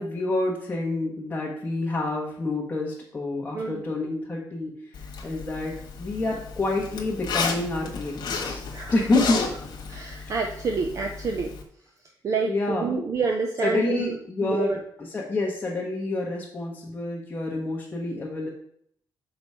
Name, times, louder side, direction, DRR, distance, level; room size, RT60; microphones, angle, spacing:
voice 1, 0.0-8.6 8.9-9.4 10.2-10.3 12.4-12.9 13.6-14.8 15.1-18.5, left 2 dB, 20° left, -4 dB, 1.2 m, -28 dB
Zipper (clothing), 4.9-11.6, left 5 dB, 70° left, 1.4 m, -33 dB
voice 2, 9.9-11.5 12.2-14.8, right 4 dB, 45° right, 3 dB, 0.7 m, -28 dB
6.2 x 4.8 x 5.5 m, 0.66 s
wide cardioid pair, 165°, 8 cm